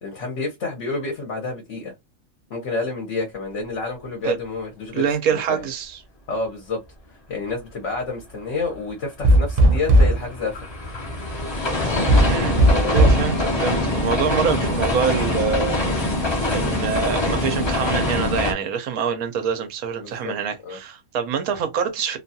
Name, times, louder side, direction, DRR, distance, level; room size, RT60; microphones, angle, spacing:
voice 1, 0.0-1.9 2.5-5.6 6.3-6.8 7.1-10.7 12.7-13.1 20.0-20.4 20.6-20.8, left 3 dB, 60° left, 1.1 m, -29 dB
voice 2, 4.9-6.0 12.1-15.8 16.5-22.2, right 7 dB, 80° right, 1.1 m, -25 dB
sound 1, 9.2-18.5, left 2 dB, 25° left, 0.7 m, -24 dB
sound 2, 9.2-10.2 12.1-13.3, right 1 dB, 50° right, 0.4 m, -15 dB
2.8 x 2.3 x 2.6 m
omnidirectional pair, 1.5 m